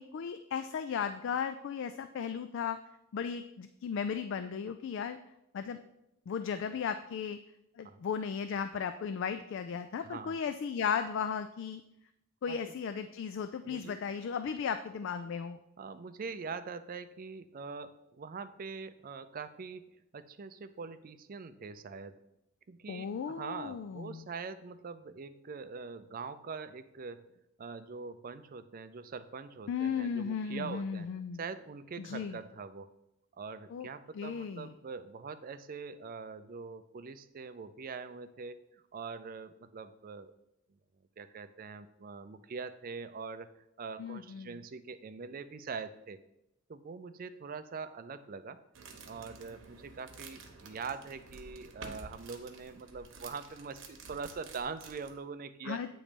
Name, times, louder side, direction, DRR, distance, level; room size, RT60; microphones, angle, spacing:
voice 1, 0.0-2.8 3.1-5.2 5.5-5.8 6.3-7.4 7.8-11.8 12.4-15.6 22.9-24.2 29.7-31.4 32.0-32.4 33.7-33.9 34.1-34.7 44.0-44.5 55.6-55.9, left 6 dB, 60° left, 10 dB, 0.3 m, -35 dB
voice 2, 10.0-10.4 12.5-12.6 13.6-14.0 15.8-22.2 22.7-27.3 27.6-31.1 31.4-32.9 33.4-40.3 41.2-43.5 43.8-46.2 46.7-48.6 49.1-55.8, right 5 dB, 45° right, 11 dB, 0.4 m, -43 dB
sound 1, 48.7-55.2, right 4 dB, 65° right, 0.9 m, -51 dB
8.5 x 3.1 x 5.1 m, 0.82 s
head